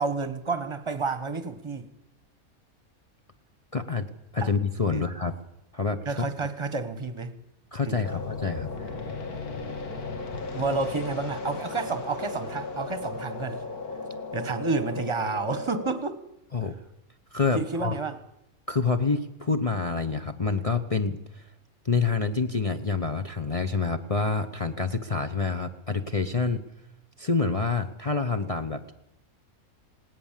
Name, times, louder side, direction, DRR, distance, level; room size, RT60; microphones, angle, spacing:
voice 1, 0.0-1.9 4.4-4.5 4.9-5.0 6.0-7.3 7.8-8.2 9.0-9.1 10.5-13.6 14.3-16.2 17.5-18.2, right 3 dB, 20° right, 1.2 m, -30 dB
voice 2, 3.7-4.1 4.3-5.4 5.7-6.0 7.7-8.7 16.5-16.7 17.3-17.9 18.7-21.4 21.8-26.6 27.2-28.9, left 4 dB, 30° left, 0.8 m, -27 dB
sound 1, 8.0-15.9, left 3 dB, 85° left, 2.4 m, -35 dB
19.5 x 18.0 x 7.4 m
omnidirectional pair, 1.5 m